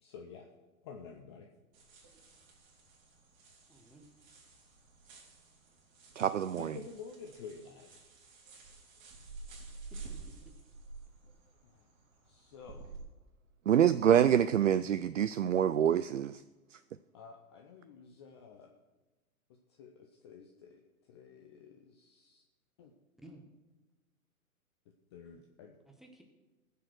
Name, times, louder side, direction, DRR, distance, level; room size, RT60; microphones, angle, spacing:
voice 1, 0.0-0.5 0.8-1.5 6.6-8.0 11.6-11.9 12.3-12.9 17.1-18.7 19.8-20.8 21.1-22.4 22.8-22.9 25.1-25.8, left 6 dB, 20° left, 2 dB, 0.6 m, -50 dB
sound 1, 1.7-13.0, right 4 dB, 30° right, 3.4 m, -51 dB
voice 2, 3.7-4.0 9.9-10.5 23.2-23.4 25.9-26.2, right 1 dB, ahead, 2 dB, 0.9 m, -56 dB
voice 3, 6.2-6.8 13.7-16.4 16.7-16.8, right 9 dB, 60° right, 13 dB, 0.5 m, -26 dB
19.0 x 6.9 x 6.3 m, 1.2 s
figure-of-eight pair, 120°, 44 cm